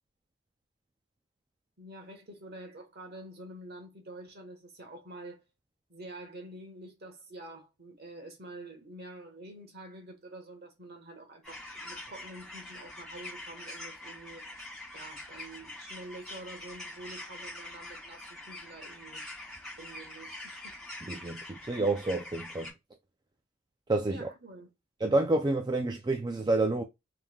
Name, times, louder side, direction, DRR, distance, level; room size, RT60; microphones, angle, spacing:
voice 1, 1.8-5.4 5.9-14.4 14.9-19.2 19.8-20.8 24.1-24.7, right 1 dB, 50° right, 1.3 m, -47 dB
sound 1, 11.4-22.7, left 1 dB, ahead, 2.8 m, -44 dB
voice 2, 21.0-22.7 23.9-24.3 25.0-26.8, right 2 dB, 20° right, 0.4 m, -29 dB
5.4 x 3.2 x 2.3 m
head